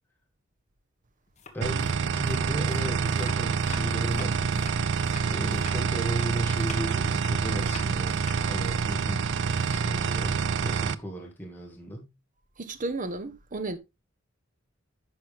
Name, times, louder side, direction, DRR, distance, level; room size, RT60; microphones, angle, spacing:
sound 1, 1.3-10.1, left 4 dB, 35° left, 1.6 m, -47 dB
voice 1, 1.5-9.2 9.7-12.1, equal, 10° left, 2.0 m, -36 dB
sound 2, 1.6-11.0, right 6 dB, 60° right, 0.5 m, -27 dB
sound 3, 3.7-10.5, left 1 dB, 55° left, 0.9 m, -48 dB
voice 2, 12.6-13.8, right 2 dB, 40° right, 1.1 m, -33 dB
10.5 x 6.0 x 3.5 m
head